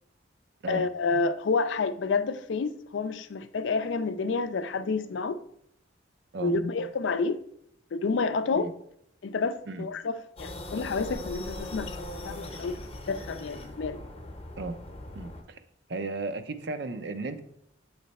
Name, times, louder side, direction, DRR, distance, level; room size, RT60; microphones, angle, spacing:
voice 1, 0.7-5.4 6.4-7.4 7.9-8.7 9.2-12.8 13.1-14.0, left 4 dB, 75° left, 0.4 m, -29 dB
sound 1, 10.4-15.4, left 1 dB, 30° left, 0.8 m, -40 dB
voice 2, 15.1-15.6 15.9-17.4, right 3 dB, 60° right, 0.5 m, -35 dB
8.3 x 3.2 x 4.1 m
head